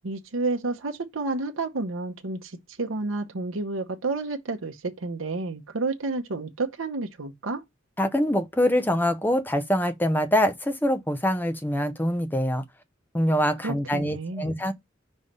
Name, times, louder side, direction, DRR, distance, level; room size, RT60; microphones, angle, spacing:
voice 1, 0.0-7.6 13.6-14.6, right 3 dB, 90° right, 0.9 m, -30 dB
voice 2, 8.0-12.6 13.1-14.7, equal, 10° left, 0.7 m, -24 dB
5.4 x 3.3 x 5.2 m
head